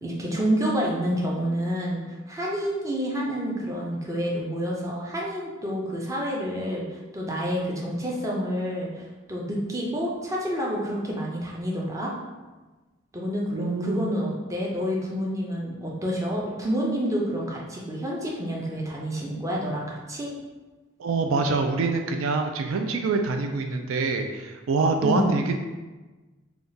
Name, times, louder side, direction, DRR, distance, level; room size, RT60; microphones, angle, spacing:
voice 1, 0.0-12.1 13.1-20.3 25.0-25.3, equal, 15° right, -3 dB, 0.6 m, -28 dB
voice 2, 13.5-14.1 21.0-25.6, right 3 dB, 80° right, 5 dB, 0.4 m, -25 dB
3.6 x 2.4 x 3.9 m, 1.2 s
head